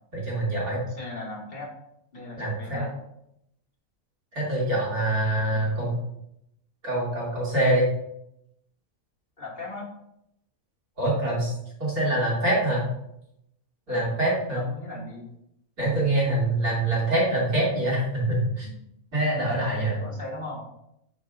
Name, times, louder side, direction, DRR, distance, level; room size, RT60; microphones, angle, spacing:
voice 1, 0.1-0.8 2.4-2.8 4.3-6.0 6.8-7.9 11.0-11.5 11.8-12.8 13.9-14.6 15.8-18.7 19.1-20.0, right 1 dB, 85° right, -5 dB, 3.2 m, -25 dB
voice 2, 0.9-1.7 2.1-2.9 9.4-9.9 13.9-14.1 14.5-15.3 19.6-20.7, left 2 dB, 35° left, -3 dB, 1.7 m, -38 dB
8.9 x 4.7 x 2.5 m, 0.78 s
omnidirectional pair, 1.5 m